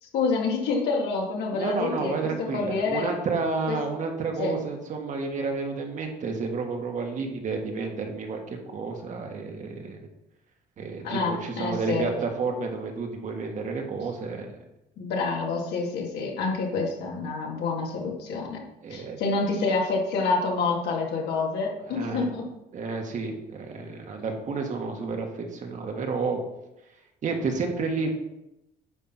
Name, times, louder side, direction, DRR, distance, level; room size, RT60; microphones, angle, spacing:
voice 1, 0.0-3.1 3.7-3.8 4.4-4.6 11.0-12.1 15.0-18.6 18.9-22.5, left 4 dB, 75° left, -1 dB, 2.2 m, -27 dB
voice 2, 1.5-10.0 10.8-14.6 18.8-19.2 21.9-22.3 22.7-26.4 27.2-28.1, right 4 dB, 45° right, 3 dB, 1.6 m, -31 dB
9.6 x 3.7 x 6.0 m, 0.90 s
cardioid pair, 110°, 17 cm